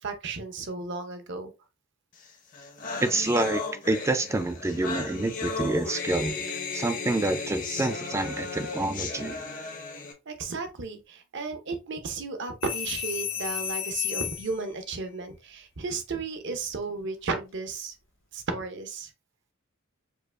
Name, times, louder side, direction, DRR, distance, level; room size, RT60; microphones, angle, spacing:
voice 1, 0.0-1.5 10.3-18.0 18.3-19.1, right 4 dB, 55° right, 0.7 m, -34 dB
sound 1, 2.3-2.4 2.5-10.1, left 4 dB, 40° left, 0.7 m, -35 dB
voice 2, 3.0-9.5, right 2 dB, 15° right, 0.3 m, -28 dB
sound 2, 12.6-14.6 17.0-17.3, left 9 dB, 60° left, 1.0 m, -32 dB
4.6 x 2.5 x 2.4 m
head